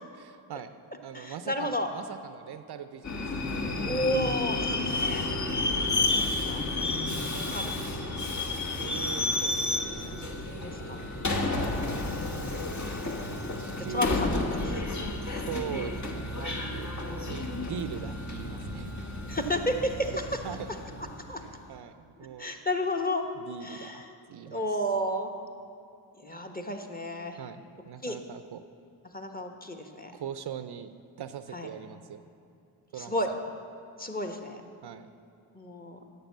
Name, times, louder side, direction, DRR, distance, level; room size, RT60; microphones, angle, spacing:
voice 1, 0.1-0.7 1.0-3.2 4.8-5.0 7.0-7.5 8.5-10.3 13.6-14.1 15.2-16.9 17.3-19.0 20.4-20.7 21.4-22.5 23.4-24.0 24.3-24.6 27.4-28.6 30.1-30.9 31.2-32.2 32.9-33.1 34.8-35.1, right 8 dB, 55° right, 11 dB, 0.6 m, -41 dB
voice 2, 1.1-1.9 3.9-5.3 6.0-6.6 7.3-7.7 10.5-11.0 11.5-11.8 12.9-13.3 13.9-14.8 17.0-17.8 19.3-20.2 21.3-21.4 22.4-23.2 23.6-24.0 24.5-25.3 26.2-27.4 28.0-28.2 29.1-30.1 31.5-31.7 33.0-33.3 34.0-34.6 35.5-36.0, left 1 dB, 20° left, 3 dB, 1.3 m, -32 dB
Subway metro underground, 3.0-21.5, left 2 dB, 35° left, 1.3 m, -31 dB
9.3 x 6.6 x 7.3 m, 2.7 s
supercardioid pair, 45°, 47 cm